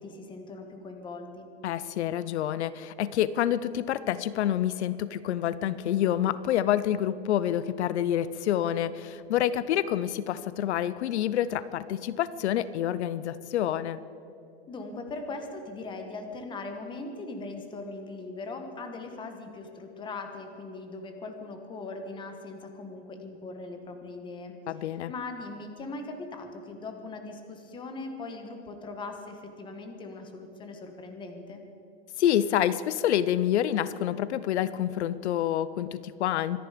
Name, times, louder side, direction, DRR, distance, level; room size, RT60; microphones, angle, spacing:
voice 1, 0.0-1.5 14.7-24.5 25.1-31.6, left 3 dB, 15° left, 5 dB, 1.3 m, -40 dB
voice 2, 1.6-14.0 24.7-25.1 32.2-36.6, left 11 dB, 80° left, 16 dB, 0.7 m, -27 dB
25.0 x 10.5 x 5.1 m, 2.6 s
supercardioid pair, 155°, 33 cm